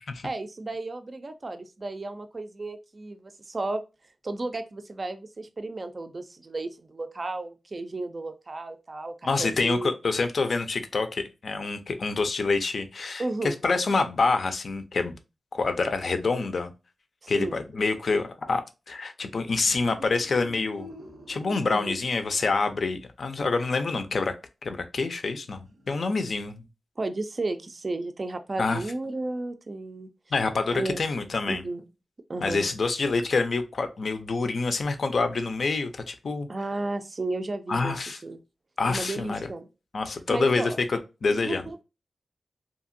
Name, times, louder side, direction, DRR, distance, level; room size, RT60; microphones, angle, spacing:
voice 1, 0.2-3.8 4.2-9.9 13.2-13.6 17.2-17.6 21.7-22.0 27.0-30.1 30.7-31.0 31.5-31.8 32.3-32.7 36.5-37.9 38.2-38.4 38.9-39.7 40.3-40.8 41.3-41.8, right 2 dB, 40° right, 9 dB, 0.3 m, -33 dB
voice 2, 9.2-15.1 15.5-16.7 17.3-18.6 18.9-20.9 21.3-24.3 24.6-26.6 28.6-28.8 30.3-31.6 32.4-36.5 37.7-38.2 38.8-39.5 39.9-41.7, left 3 dB, 65° left, 8 dB, 0.4 m, -27 dB
sound 1, 19.5-22.2 25.6-26.4, equal, 90° right, 0.6 m, -46 dB
2.8 x 2.5 x 2.5 m, 0.28 s
wide cardioid pair, 100°, 0 cm